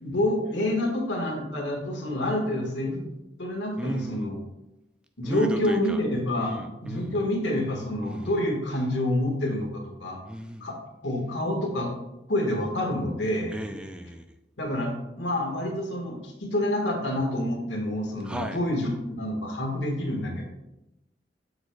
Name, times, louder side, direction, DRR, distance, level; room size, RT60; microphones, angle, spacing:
voice 1, 0.0-3.1 3.4-4.4 5.2-10.2 10.6-10.8 11.0-11.9 12.3-13.6 14.6-20.5, left 1 dB, 85° left, 1 dB, 1.5 m, -28 dB
voice 2, 3.8-4.3 5.2-6.0 6.4-7.3 8.0-8.3 10.2-10.7 13.5-14.2 18.2-18.6, equal, 5° right, 6 dB, 0.3 m, -35 dB
8.0 x 6.5 x 2.3 m, 0.93 s
head